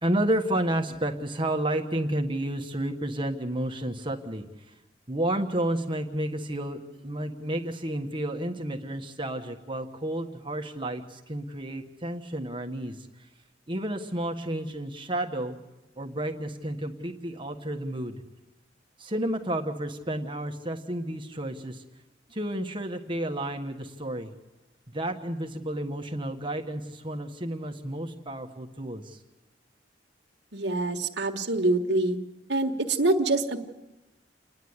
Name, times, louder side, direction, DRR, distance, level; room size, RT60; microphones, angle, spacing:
voice 1, 0.0-4.7 5.1-13.3 13.7-15.6 16.0-18.1 19.0-21.8 22.3-24.3 24.9-29.2, right 1 dB, 30° right, 4 dB, 1.4 m, -31 dB
voice 2, 30.5-32.2 32.5-33.6, right 2 dB, 70° right, 3 dB, 1.6 m, -25 dB
29.0 x 10.5 x 9.7 m, 1.0 s
head